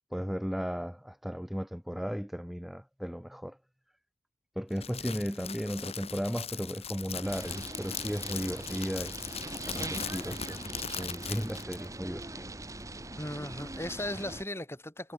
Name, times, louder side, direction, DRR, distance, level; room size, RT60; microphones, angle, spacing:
voice 1, 0.1-3.6 4.6-9.2 9.6-12.5, equal, ahead, 2.5 m, -35 dB
Crackle, 4.7-11.9, left 7 dB, 35° left, 7.6 m, -40 dB
sound 1, 7.2-14.4, right 2 dB, 20° right, 2.4 m, -41 dB
voice 2, 13.2-15.1, left 1 dB, 15° left, 6.3 m, -37 dB
head